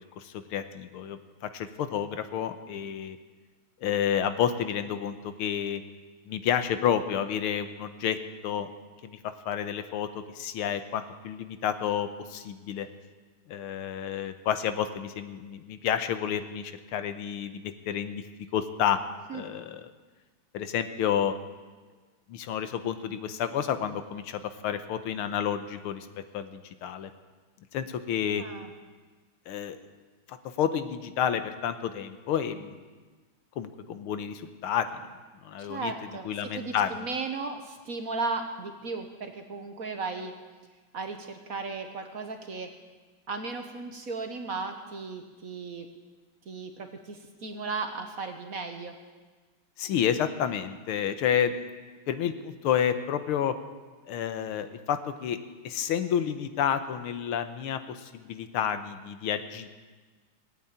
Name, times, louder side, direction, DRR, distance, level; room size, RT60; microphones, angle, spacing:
voice 1, 0.2-3.2 3.8-5.8 6.3-8.2 8.4-8.7 9.0-12.9 13.5-18.3 18.5-19.0 19.3-19.9 20.5-21.3 22.3-27.1 27.7-28.4 29.5-29.8 30.3-32.8 33.6-34.9 35.4-35.9 36.3-37.1 49.8-51.7 52.1-53.6 54.1-59.7, left 9 dB, 85° left, 10 dB, 1.8 m, -30 dB
voice 2, 28.4-28.7 35.6-40.3 40.9-42.7 43.3-45.9 46.5-48.9, right 4 dB, 50° right, 6 dB, 1.2 m, -35 dB
18.5 x 8.7 x 8.8 m, 1.4 s
omnidirectional pair, 2.3 m